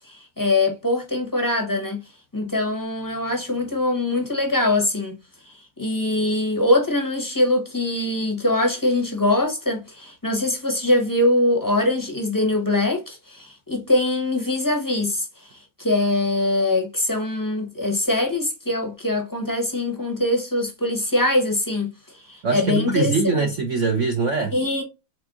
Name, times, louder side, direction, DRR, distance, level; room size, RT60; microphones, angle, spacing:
voice 1, 0.0-2.0 2.3-5.2 5.4-23.3 24.5-24.8, left 2 dB, 15° left, 0.6 m, -23 dB
voice 2, 22.4-24.5, right 4 dB, 70° right, 0.7 m, -22 dB
4.3 x 3.5 x 2.4 m
omnidirectional pair, 2.0 m